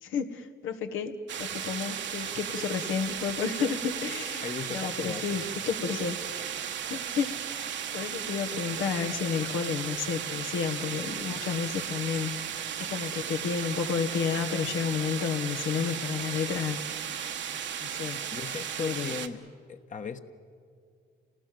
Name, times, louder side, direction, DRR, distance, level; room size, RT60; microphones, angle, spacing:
voice 1, 0.0-1.1 1.4-6.2 6.9-7.3 7.9-12.3 12.8-16.8 17.8-18.2 18.8-19.1, left 6 dB, 85° left, 5 dB, 1.5 m, -31 dB
sound 1, 1.3-19.3, right 8 dB, 65° right, 1.2 m, -35 dB
voice 2, 4.4-5.2 18.0-19.4 19.7-20.2, left 5 dB, 40° left, 7 dB, 1.2 m, -37 dB
28.0 x 18.5 x 7.7 m, 2.2 s
cardioid pair, 90°, 20 cm